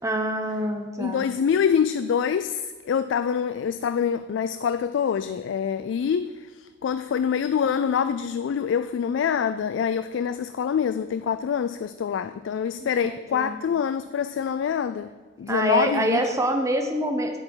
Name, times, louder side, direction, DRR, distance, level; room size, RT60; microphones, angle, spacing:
voice 1, 0.0-1.3 12.8-13.5 15.5-17.4, right 1 dB, 15° right, 4 dB, 0.9 m, -26 dB
voice 2, 1.0-6.3 6.8-15.1 15.4-16.2, left 7 dB, 80° left, 12 dB, 0.3 m, -25 dB
8.6 x 8.5 x 4.7 m, 1.4 s
head